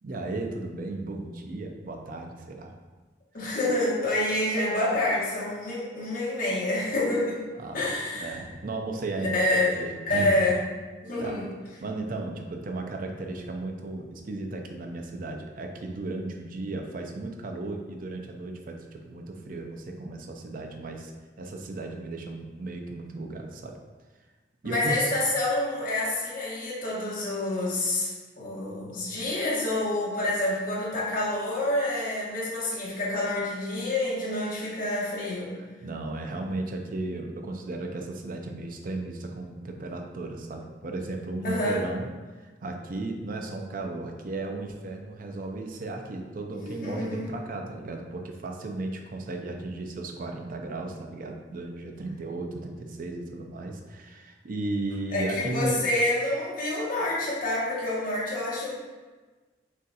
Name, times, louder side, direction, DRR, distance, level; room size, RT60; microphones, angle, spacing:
voice 1, 0.0-2.7 3.4-3.6 7.6-7.8 8.1-10.4 11.2-11.4 11.8-21.1 21.4-23.8 24.6-25.1 34.6-34.7 35.8-42.1 42.4-55.8, right 2 dB, 45° right, 3 dB, 0.4 m, -35 dB
voice 2, 3.3-7.4 7.7-8.3 9.2-9.8 10.1-10.6 11.0-11.5 24.6-35.5 41.4-41.8 46.6-47.5 55.1-58.8, left 1 dB, 50° left, -6 dB, 1.2 m, -27 dB
6.3 x 2.4 x 2.7 m, 1.3 s
head